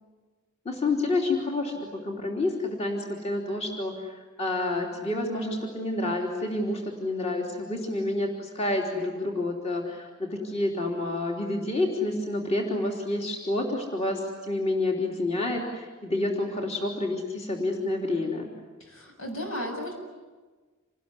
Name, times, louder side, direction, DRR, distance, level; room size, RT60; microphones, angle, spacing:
voice 1, 0.6-18.5, left 2 dB, 30° left, 0 dB, 3.4 m, -29 dB
voice 2, 18.8-19.9, equal, 75° left, 3 dB, 7.4 m, -34 dB
28.0 x 20.0 x 9.9 m, 1.3 s
head